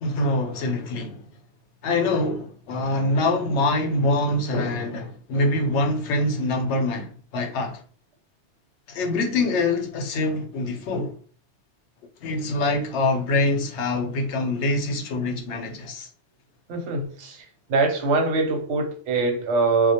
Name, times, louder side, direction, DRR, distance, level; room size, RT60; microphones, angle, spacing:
voice 1, 0.0-1.2 1.8-7.8 8.9-11.2 12.2-16.1, left 2 dB, 75° left, 0.9 m, -24 dB
voice 2, 16.7-19.9, right 3 dB, 85° right, 1.0 m, -23 dB
2.2 x 2.1 x 2.8 m
omnidirectional pair, 1.2 m